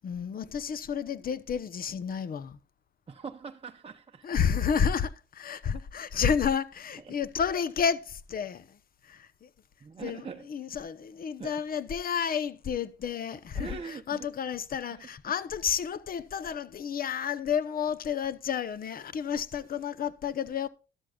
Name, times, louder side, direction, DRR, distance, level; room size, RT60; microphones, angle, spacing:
voice 1, 0.0-2.6 4.2-9.5 10.0-20.7, left 7 dB, 45° left, 0.8 m, -31 dB
voice 2, 3.1-4.3 7.1-7.2 9.8-10.5 11.4-11.5 13.5-14.3, right 5 dB, 30° right, 0.7 m, -42 dB
13.0 x 13.0 x 2.4 m
cardioid pair, 90°, 20 cm